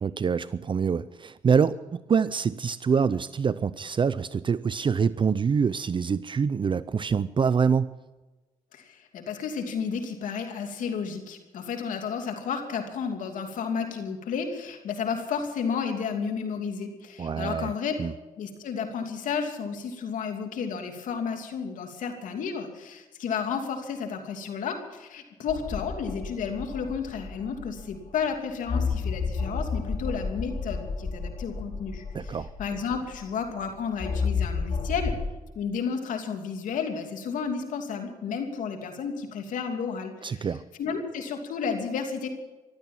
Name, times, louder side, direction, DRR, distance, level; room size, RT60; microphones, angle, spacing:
voice 1, 0.0-7.9 17.2-17.7 18.0-18.1 32.1-32.5 40.2-40.6, right 6 dB, 40° right, 16 dB, 0.5 m, -25 dB
voice 2, 8.7-18.0 18.4-35.2 35.5-40.5 40.8-42.3, left 6 dB, 75° left, 5 dB, 2.9 m, -32 dB
sound 1, 25.5-28.1 28.7-33.4 34.0-35.2, left 4 dB, 45° left, 4.2 m, -31 dB
15.0 x 12.5 x 7.4 m, 1.1 s
cardioid pair, 75°, 13 cm